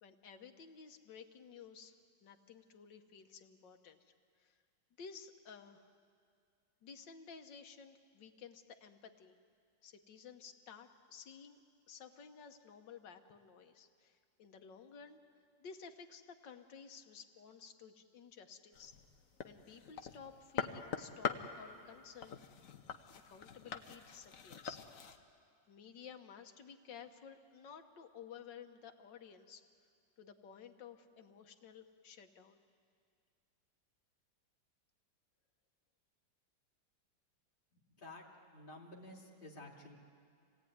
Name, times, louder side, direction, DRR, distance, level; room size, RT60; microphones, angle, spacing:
voice 1, 0.0-4.0 4.4-4.6 5.0-5.9 6.8-9.4 9.8-11.6 11.9-15.2 15.6-18.9 19.4-22.4 23.3-24.8 25.7-29.7 30.2-32.6, left 6 dB, 85° left, 6 dB, 1.9 m, -54 dB
sound 1, 18.7-25.2, left 7 dB, 55° left, 1.3 m, -44 dB
voice 2, 38.0-40.0, left 1 dB, 30° left, -2 dB, 2.7 m, -52 dB
26.5 x 18.0 x 9.5 m, 2.2 s
omnidirectional pair, 1.9 m